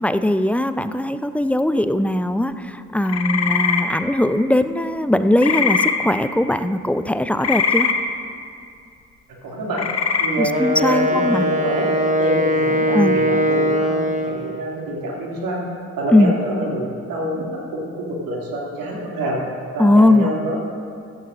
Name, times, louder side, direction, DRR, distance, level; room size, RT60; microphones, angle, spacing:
voice 1, 0.0-7.9 10.4-11.4 12.9-13.2 16.1-16.3 19.8-20.3, left 1 dB, 5° left, 11 dB, 0.4 m, -19 dB
sound 1, 3.1-3.8 5.4-5.9 7.4-7.9 9.7-10.3, left 6 dB, 40° left, 1.1 m, -20 dB
voice 2, 9.4-9.9 10.2-10.5 10.8-15.6 16.0-19.4 19.7-20.6, right 1 dB, 60° right, -2 dB, 2.6 m, -26 dB
Wind instrument woodwind instrument, 10.5-14.5, equal, 20° right, 1.3 m, -20 dB
15.0 x 12.0 x 2.6 m, 2.4 s
figure-of-eight pair, 40°, 38 cm